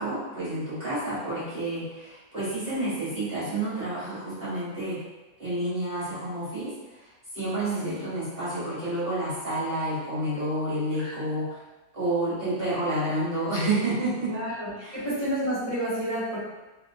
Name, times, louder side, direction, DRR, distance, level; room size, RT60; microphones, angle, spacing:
voice 1, 0.0-5.0 5.4-6.7 7.3-11.5 11.9-14.3 14.8-15.0, right 1 dB, 40° right, -12 dB, 1.3 m, -29 dB
voice 2, 11.0-11.5 14.3-16.4, equal, 25° left, -11 dB, 1.6 m, -31 dB
3.3 x 2.8 x 2.6 m, 1.1 s
omnidirectional pair, 1.6 m